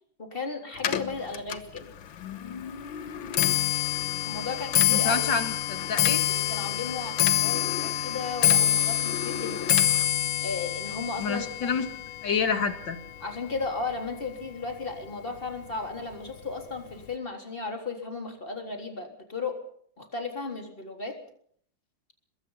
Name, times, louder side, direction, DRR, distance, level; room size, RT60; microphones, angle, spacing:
voice 1, 0.2-1.9 4.3-5.2 6.3-9.8 10.4-11.8 13.2-19.6 20.0-21.2, left 4 dB, 25° left, 4 dB, 3.8 m, -35 dB
Clock, 0.8-14.1 14.4-14.9 15.7-15.8 16.1-16.5 16.8-16.9, left 11 dB, 85° left, 1.9 m, -27 dB
voice 2, 4.9-6.2 11.2-11.8 12.2-13.0, left 5 dB, 70° left, 8 dB, 2.8 m, -28 dB
24.0 x 21.5 x 5.7 m, 0.62 s
omnidirectional pair, 2.1 m